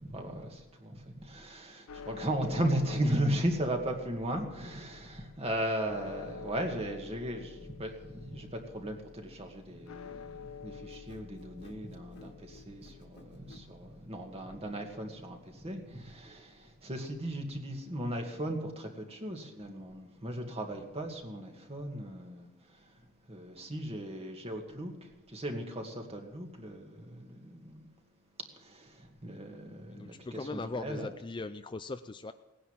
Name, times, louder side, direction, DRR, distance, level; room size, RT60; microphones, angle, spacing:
voice 1, 0.0-22.9 23.3-27.9 28.6-31.1, right 1 dB, 30° right, 3 dB, 2.2 m, -37 dB
sound 1, 1.9-16.1, left 6 dB, 85° left, 0.6 m, -50 dB
sound 2, 10.9-13.7, left 1 dB, 55° left, 1.8 m, -55 dB
voice 2, 29.9-32.3, left 3 dB, 25° left, 10 dB, 0.4 m, -39 dB
18.0 x 10.0 x 7.4 m, 1.0 s
head